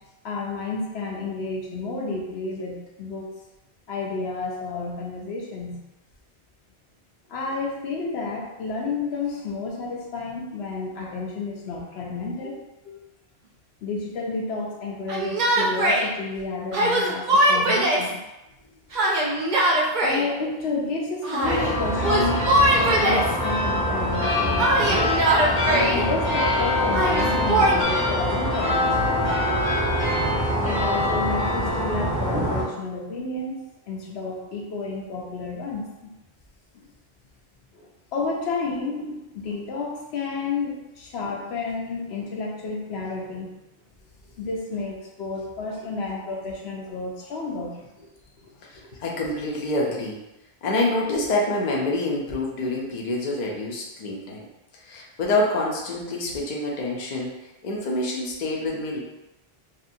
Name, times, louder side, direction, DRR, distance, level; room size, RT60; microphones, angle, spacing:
voice 1, 0.2-3.3 3.9-5.8 7.3-12.6 12.8-13.0 13.8-18.1 20.0-25.1 25.6-29.7 30.4-33.6 33.9-36.1 36.7-36.8 37.7-43.5 44.4-47.9, left 3 dB, 80° left, -1 dB, 0.9 m, -31 dB
Yell, 15.1-16.1 16.7-18.1 18.9-20.3 21.2-21.7 22.0-23.3 24.6-26.0 26.9-27.8, right 1 dB, 55° right, 0.6 m, -21 dB
sound 1, 21.4-32.6, left 1 dB, 25° right, 0.9 m, -24 dB
voice 2, 48.6-50.2 50.6-54.5 54.7-57.3 57.6-59.0, left 2 dB, 50° left, -2 dB, 0.6 m, -27 dB
2.7 x 2.4 x 2.6 m, 0.95 s
omnidirectional pair, 1.1 m